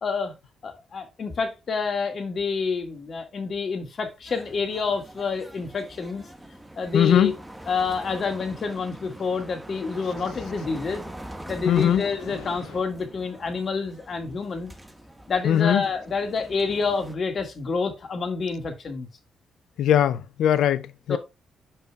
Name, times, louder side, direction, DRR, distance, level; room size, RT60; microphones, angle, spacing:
voice 1, 0.0-0.3 0.6-6.3 6.8-7.3 7.7-11.0 11.5-14.7 15.3-19.1 21.1-21.2, left 4 dB, 55° left, 2.0 m, -28 dB
sound 1, 4.1-5.1 5.8-5.9 6.3-6.4 7.8-7.9 8.6-8.7 9.9-10.0 10.9-11.0 11.7-12.8, left 3 dB, 90° left, 2.1 m, -43 dB
sound 2, 4.3-17.1, right 1 dB, 10° right, 1.7 m, -43 dB
voice 2, 6.9-7.3 11.7-12.0 15.4-15.8 19.8-21.2, left 10 dB, 75° left, 0.5 m, -20 dB
9.8 x 5.5 x 2.4 m
hypercardioid pair, 45°, 0 cm